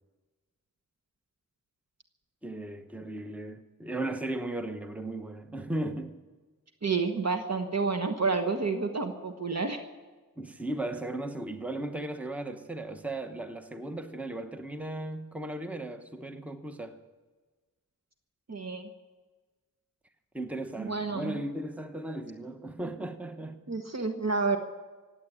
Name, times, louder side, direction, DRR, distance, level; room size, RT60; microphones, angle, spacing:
voice 1, 2.4-6.2 10.4-17.0 20.3-23.8, right 1 dB, 5° right, 1.1 m, -36 dB
voice 2, 6.8-9.8 18.5-18.9 20.8-21.4 23.7-24.6, right 4 dB, 50° right, 1.3 m, -29 dB
16.0 x 8.7 x 9.9 m
cardioid pair, 50°, 34 cm